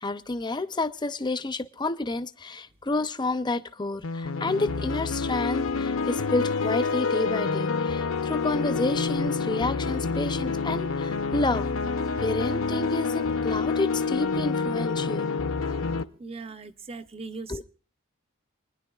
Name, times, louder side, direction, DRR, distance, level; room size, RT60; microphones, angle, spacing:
voice 1, 0.0-11.7 12.2-15.3 17.5-17.6, left 2 dB, 20° left, 0.6 m, -30 dB
sound 1, 4.0-16.0, left 4 dB, 70° left, 0.7 m, -28 dB
voice 2, 16.2-17.6, right 4 dB, 25° right, 0.6 m, -39 dB
28.0 x 10.0 x 2.4 m
head